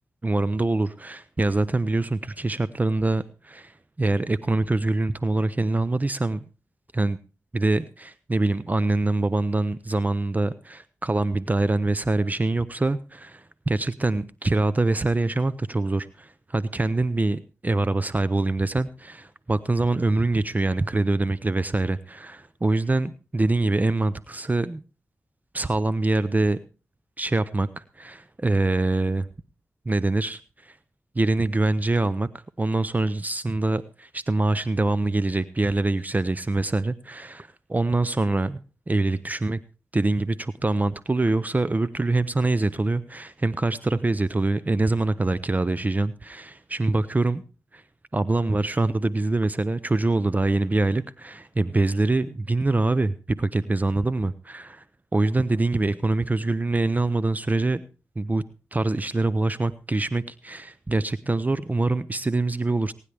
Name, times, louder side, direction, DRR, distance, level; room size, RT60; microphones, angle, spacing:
voice 1, 0.2-6.4 6.9-7.2 7.5-24.8 25.5-26.6 27.2-29.3 29.9-30.8 31.1-38.6 38.9-39.6 39.9-47.4 47.7-47.8 48.1-54.8 55.1-57.8 58.2-58.4 58.7-62.9, right 2 dB, 30° right, 16 dB, 0.7 m, -24 dB
23.5 x 9.9 x 3.4 m, 0.33 s
cardioid pair, 40°, 5 cm